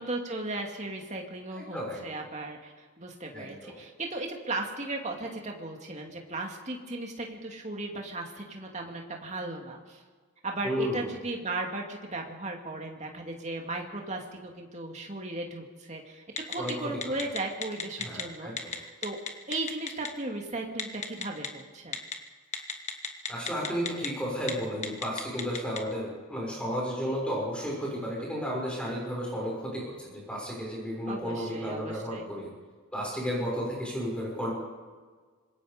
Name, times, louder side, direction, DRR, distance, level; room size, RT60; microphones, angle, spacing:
voice 1, 0.0-10.0 10.4-19.2 19.5-22.0 31.1-32.3, right 2 dB, 30° right, 1 dB, 2.6 m, -36 dB
voice 2, 1.6-2.2 3.3-3.8 10.6-11.1 16.6-16.7 17.0-17.2 18.0-18.7 23.3-32.5 32.9-34.5, equal, 5° left, -3 dB, 6.2 m, -33 dB
Telephone, 16.4-16.7 17.0-18.2 18.6-18.8 19.0-20.1 20.8-21.5 21.9-22.1 22.5-24.1 24.4-24.5 24.8-25.8, left 6 dB, 30° left, 1.5 m, -32 dB
25.5 x 21.5 x 5.3 m, 1.5 s
head